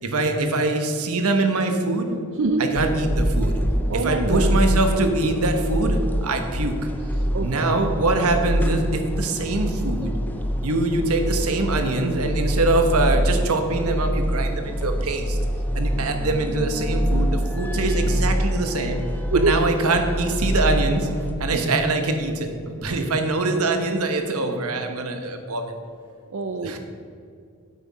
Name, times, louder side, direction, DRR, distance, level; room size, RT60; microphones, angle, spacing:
voice 1, 0.0-2.2 2.6-3.6 3.9-6.7 7.4-10.1 10.6-15.4 15.7-19.0 19.3-21.1 21.4-25.7 26.6-26.8, right 2 dB, 80° right, 5 dB, 1.2 m, -23 dB
sound 1, 2.8-21.3, equal, 10° left, 0.6 m, -25 dB
voice 2, 3.9-4.5 7.3-7.8 19.3-19.6 26.3-26.8, right 3 dB, 60° right, 5 dB, 0.5 m, -24 dB
9.5 x 8.2 x 4.8 m, 2.4 s
head